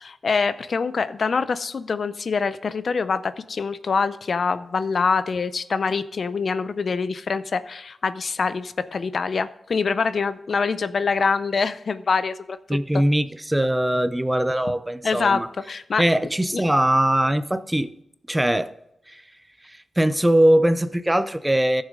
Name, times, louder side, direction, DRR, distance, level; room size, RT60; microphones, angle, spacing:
voice 1, 0.0-13.0 15.0-15.4 15.7-16.0 16.5-16.6, left 5 dB, 60° left, 0.5 m, -25 dB
voice 2, 12.7-15.5 16.0-17.9 18.3-18.7 19.1-19.2 19.6-21.8, right 1 dB, 10° right, 0.5 m, -21 dB
14.5 x 6.4 x 3.7 m
wide cardioid pair, 90°, 0 cm